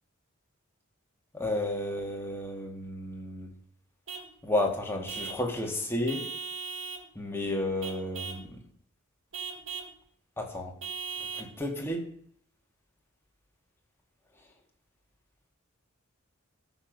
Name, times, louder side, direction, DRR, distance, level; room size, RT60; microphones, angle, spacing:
voice 1, 1.3-3.5 4.4-6.3 7.2-8.5 10.4-10.7 11.4-12.0, left 1 dB, 10° left, 1 dB, 2.0 m, -32 dB
Vehicle horn car horn honking / Truck, 4.1-4.3 5.1-5.5 6.1-7.1 7.8-8.5 9.3-10.0 10.8-11.5, right 6 dB, 70° right, 1.6 m, -38 dB
14.0 x 6.3 x 5.3 m, 0.66 s
head